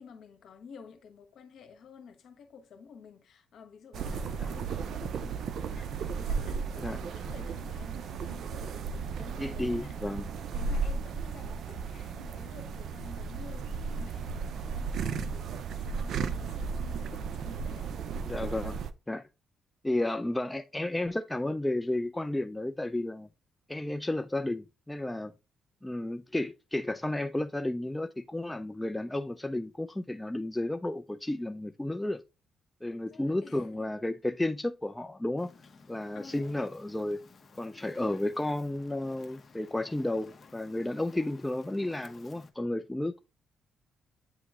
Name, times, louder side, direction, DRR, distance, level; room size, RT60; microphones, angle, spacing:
voice 1, 0.0-10.0 10.5-17.9 19.9-20.1 32.8-33.9 36.1-36.6, left 6 dB, 70° left, 1.1 m, -51 dB
sound 1, 3.9-18.9, right 5 dB, 65° right, 0.5 m, -35 dB
voice 2, 9.4-10.3 18.2-18.8 19.1-19.3 19.8-23.3 23.7-25.3 25.8-32.2 32.8-35.5 35.9-37.2 37.5-43.2, left 1 dB, 10° left, 0.3 m, -32 dB
Fire, 35.4-42.5, left 4 dB, 40° left, 0.9 m, -54 dB
8.7 x 3.0 x 3.5 m
cardioid pair, 90°, 0 cm